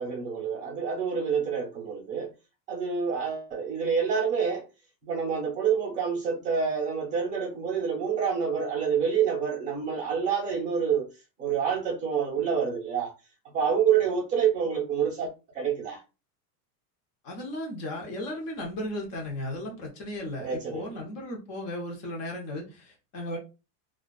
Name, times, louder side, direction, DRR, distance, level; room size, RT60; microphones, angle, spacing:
voice 1, 0.0-2.3 2.7-4.6 5.0-11.1 11.4-13.1 13.5-16.0 20.4-21.0, right 7 dB, 15° right, 0.6 m, -27 dB
voice 2, 17.2-23.4, left 1 dB, 30° left, 0.8 m, -35 dB
2.3 x 2.3 x 2.3 m
supercardioid pair, 165°, 48 cm